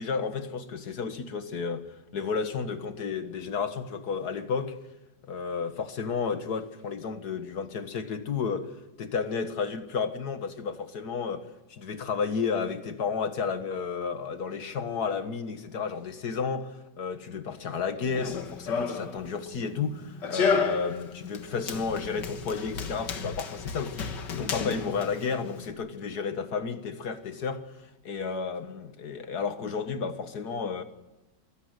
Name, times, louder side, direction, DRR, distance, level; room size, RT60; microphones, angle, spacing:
voice 1, 0.0-1.8 2.1-4.8 5.3-8.7 9.0-27.6 28.0-30.8, left 5 dB, 65° left, 2.1 m, -32 dB
Run, 18.0-25.7, left 5 dB, 85° left, 2.2 m, -33 dB
23.0 x 17.5 x 8.1 m
omnidirectional pair, 1.8 m